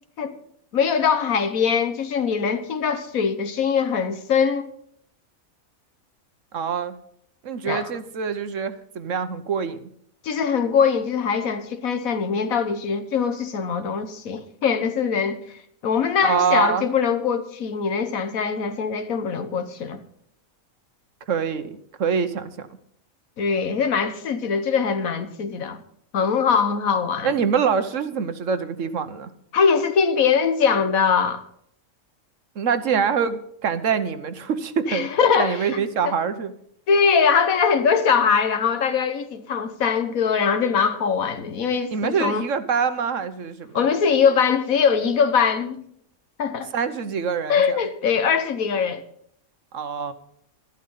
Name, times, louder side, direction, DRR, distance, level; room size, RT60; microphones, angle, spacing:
voice 1, 0.7-4.7 7.6-7.9 10.2-15.4 15.8-20.0 23.4-25.8 26.1-27.3 29.5-31.4 34.9-35.6 36.0-36.1 36.9-42.4 43.7-45.8 46.4-46.7 47.5-49.0, left 6 dB, 70° left, 1.5 m, -22 dB
voice 2, 6.5-6.9 7.4-9.8 16.2-16.9 21.3-22.7 27.2-29.3 32.6-35.1 35.4-36.5 41.9-43.8 46.7-47.8 49.7-50.1, right 6 dB, 65° right, 1.2 m, -25 dB
13.0 x 11.5 x 5.5 m
omnidirectional pair, 1.5 m